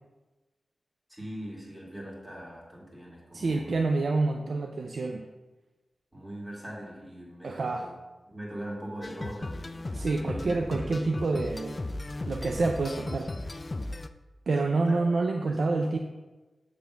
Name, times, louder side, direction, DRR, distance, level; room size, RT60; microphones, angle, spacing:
voice 1, 1.1-3.8 6.1-7.9 8.3-11.2 14.6-15.0 15.5-15.6, right 1 dB, 15° right, -4 dB, 2.2 m, -41 dB
voice 2, 3.3-5.3 7.4-7.9 9.9-11.8 12.3-13.3 14.5-16.0, right 3 dB, 70° right, 4 dB, 0.4 m, -28 dB
sound 1, 9.0-14.1, left 2 dB, 30° left, 0.3 m, -36 dB
7.1 x 3.4 x 6.3 m, 1.2 s
wide cardioid pair, 85°, 0 cm